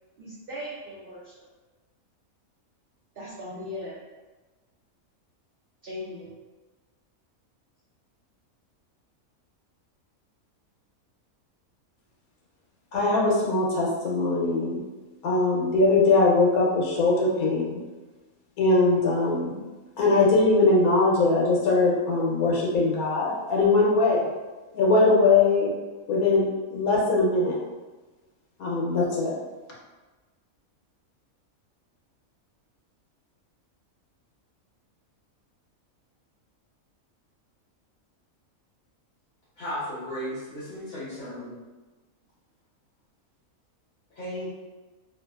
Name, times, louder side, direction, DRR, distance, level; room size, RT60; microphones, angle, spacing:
voice 1, 0.2-1.5 3.1-4.0 5.8-6.4, left 1 dB, 60° right, -8 dB, 0.6 m, -38 dB
voice 2, 12.9-14.8 15.2-17.8 18.6-19.6 20.0-24.3 24.7-25.7 26.1-27.6 28.6-29.3, left 3 dB, 80° left, -3 dB, 1.1 m, -21 dB
voice 3, 39.6-41.5 44.1-44.5, equal, 60° left, -10 dB, 1.0 m, -35 dB
2.7 x 2.5 x 2.3 m, 1.2 s
omnidirectional pair, 1.5 m